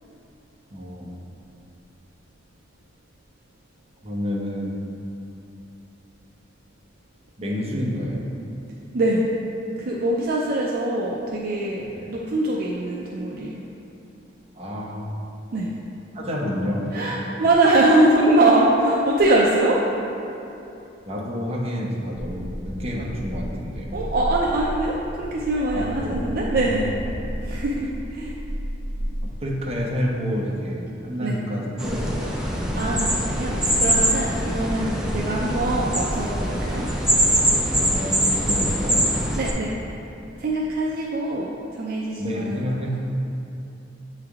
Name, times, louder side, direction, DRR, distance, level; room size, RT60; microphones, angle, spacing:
voice 1, 0.7-1.1 4.0-4.7 7.4-8.3 11.8-12.1 14.5-15.1 16.1-17.0 21.0-24.0 25.7-26.2 26.5-26.8 29.2-32.3 37.8-39.0 42.2-43.0, equal, 35° right, -3 dB, 0.8 m, -29 dB
voice 2, 8.9-9.3 9.8-11.8 12.1-13.6 15.5-15.7 16.9-19.8 23.9-26.9 27.4-28.4 31.2-31.4 32.7-36.8 39.3-39.7 40.4-42.6, right 2 dB, 55° right, -4 dB, 0.5 m, -22 dB
sound 1, 22.1-29.8, equal, 90° left, 0.6 m, -33 dB
sound 2, 31.8-39.5, equal, 5° right, 0.5 m, -23 dB
8.2 x 3.3 x 3.5 m, 2.9 s
head